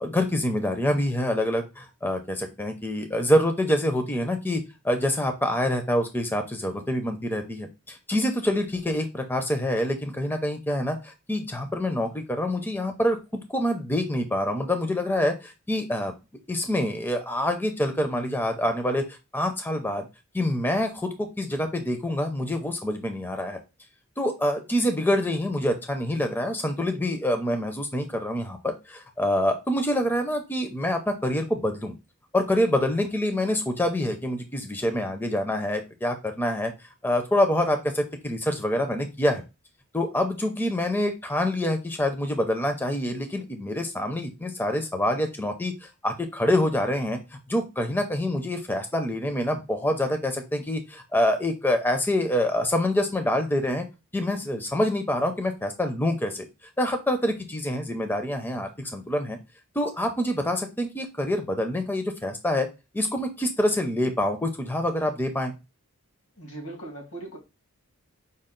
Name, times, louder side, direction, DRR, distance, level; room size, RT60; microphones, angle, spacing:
voice 1, 0.0-16.1 16.5-19.0 19.3-20.1 20.3-23.6 24.2-31.9 32.3-36.7 37.0-39.4 39.9-47.2 47.5-53.9 54.1-56.4 56.8-59.4 59.8-62.7 62.9-65.5, left 1 dB, 10° left, 0.5 m, -26 dB
voice 2, 66.4-67.4, right 2 dB, 90° left, 1.9 m, -39 dB
5.3 x 2.3 x 3.7 m
head